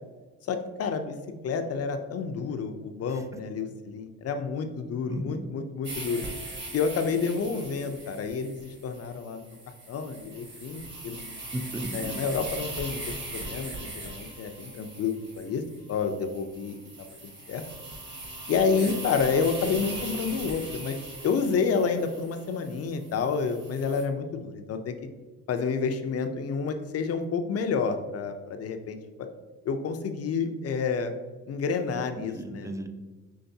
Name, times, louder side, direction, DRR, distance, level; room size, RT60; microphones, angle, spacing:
voice 1, 0.4-1.2 1.4-6.2 6.7-9.6 9.9-11.4 11.9-13.0 13.3-15.6 15.9-16.7 17.5-17.6 18.5-21.0 21.2-25.0 25.5-29.3 29.6-31.1 31.5-32.7, left 5 dB, 55° left, 7 dB, 0.6 m, -29 dB
voice 2, 5.1-5.4 11.5-12.2 32.2-32.9, right 1 dB, 10° right, 6 dB, 0.4 m, -35 dB
sound 1, 5.8-24.0, right 2 dB, 40° right, 1.5 m, -40 dB
5.7 x 3.1 x 2.7 m, 1.3 s
cardioid pair, 90°, 30 cm